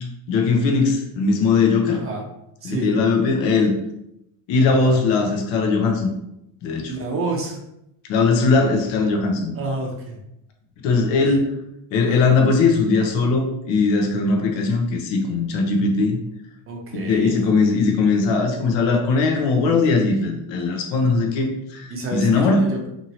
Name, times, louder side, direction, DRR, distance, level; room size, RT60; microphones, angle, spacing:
voice 1, 0.3-2.0 2.6-3.7 4.5-6.1 6.6-6.9 8.1-9.5 10.8-11.4 11.9-16.2 16.9-22.7, left 4 dB, 60° left, 2 dB, 0.7 m, -19 dB
voice 2, 1.9-2.2 2.6-3.0 4.7-5.0 6.9-7.6 9.5-10.2 11.2-11.4 12.1-12.4 16.7-17.5 21.9-22.8, right 3 dB, 30° right, 0 dB, 0.6 m, -29 dB
2.8 x 2.7 x 2.7 m, 0.81 s
cardioid pair, 125°, 49 cm